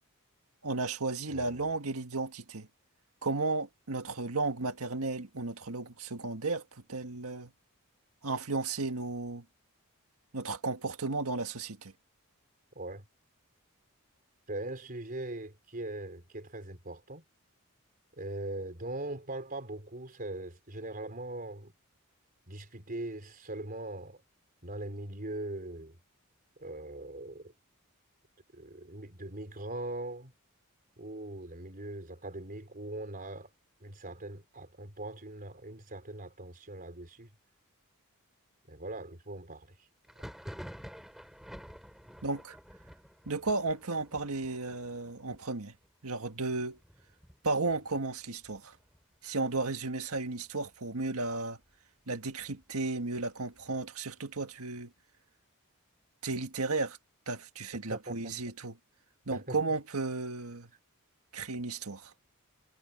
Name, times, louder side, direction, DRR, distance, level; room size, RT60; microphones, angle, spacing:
voice 1, 0.6-2.7 3.2-6.6 6.9-7.5 8.2-9.4 10.3-11.9 42.2-42.6 43.2-45.7 46.0-46.8 47.4-48.8 49.2-51.6 52.1-54.9 56.2-57.0 57.3-58.7 59.3-60.7 61.3-62.1, right 3 dB, 75° right, 1.7 m, -34 dB
voice 2, 1.3-1.6 12.8-13.0 14.5-17.2 18.2-21.7 22.5-24.2 24.6-26.0 26.6-27.5 28.5-30.3 31.0-33.5 33.8-37.3 38.7-39.9 57.9-58.3 59.3-59.6, right 2 dB, 40° right, 4.4 m, -41 dB
Thunder, 40.0-49.6 49.8-50.5 50.8-51.8 52.2-53.9, equal, ahead, 4.2 m, -51 dB
head